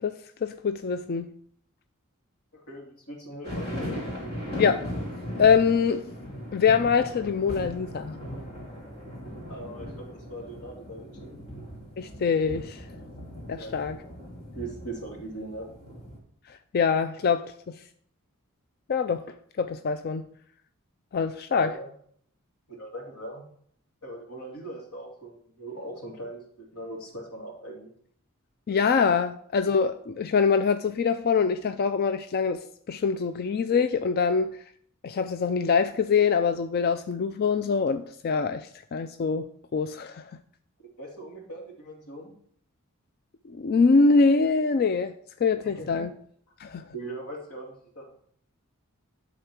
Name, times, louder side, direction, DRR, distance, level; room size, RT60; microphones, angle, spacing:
voice 1, 0.0-1.3 4.6-4.8 5.4-6.0 6.5-8.2 12.0-12.9 13.5-14.0 16.7-17.5 18.9-19.2 19.6-20.3 21.1-21.7 28.7-32.6 32.9-34.5 35.0-40.2 43.6-45.1 45.4-46.1 46.6-46.8, left 5 dB, 45° left, 9 dB, 0.4 m, -24 dB
voice 2, 2.5-4.0 9.5-11.4 13.5-13.8 14.5-15.7 21.5-21.9 22.8-23.4 24.0-27.9 40.8-42.3 45.6-46.1 46.9-48.2, right 1 dB, 90° left, -1 dB, 2.6 m, -40 dB
sound 1, 3.4-16.2, equal, 25° left, 2.8 m, -38 dB
11.5 x 3.8 x 5.9 m, 0.63 s
head